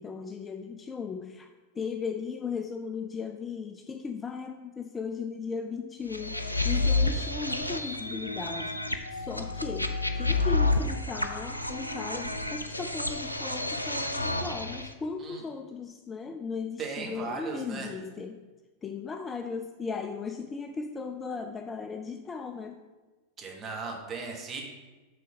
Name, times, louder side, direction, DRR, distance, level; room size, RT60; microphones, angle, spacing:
voice 1, 0.0-1.5 1.8-8.8 9.1-18.4 18.8-22.8, left 5 dB, 20° left, 6 dB, 0.3 m, -37 dB
sound 1, 6.1-14.9, left 2 dB, 85° left, 0.4 m, -30 dB
voice 2, 16.8-17.9 23.4-24.6, right 4 dB, 25° right, 0 dB, 1.3 m, -37 dB
6.4 x 3.7 x 5.4 m, 1.2 s
figure-of-eight pair, 90°, 0 cm